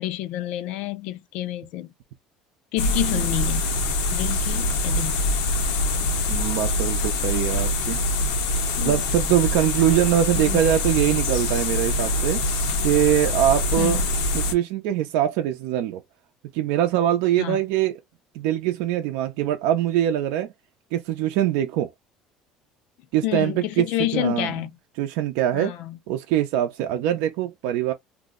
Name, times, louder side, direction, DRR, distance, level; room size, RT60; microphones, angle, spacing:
voice 1, 0.0-1.9 2.7-3.7 4.1-5.3 8.8-9.0 10.4-10.6 13.8-14.1 17.4-17.6 23.2-24.8 25.5-26.0, left 15 dB, 70° left, 0.5 m, -29 dB
sound 1, 2.8-14.5, left 2 dB, 90° left, 0.9 m, -24 dB
voice 2, 6.3-8.0 8.8-12.4 12.8-14.0 14.3-16.0 16.5-17.9 18.3-20.5 20.9-21.9 23.1-23.9 24.1-24.5 25.0-25.7 26.1-27.9, right 11 dB, 80° right, 0.5 m, -23 dB
2.7 x 2.0 x 3.6 m
cardioid pair, 145°, 2 cm